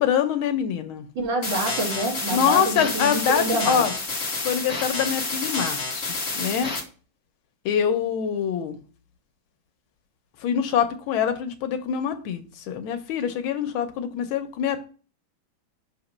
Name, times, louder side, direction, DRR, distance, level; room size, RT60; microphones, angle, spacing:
voice 1, 0.0-1.1 2.3-3.9 4.4-6.1 6.3-6.7 7.6-8.8 10.4-14.9, left 8 dB, 90° left, 8 dB, 1.6 m, -25 dB
voice 2, 1.2-3.9, right 2 dB, 65° right, -1 dB, 2.3 m, -27 dB
sound 1, 1.4-6.8, left 3 dB, 35° left, 1.4 m, -29 dB
6.5 x 2.9 x 5.3 m, 0.37 s
omnidirectional pair, 2.2 m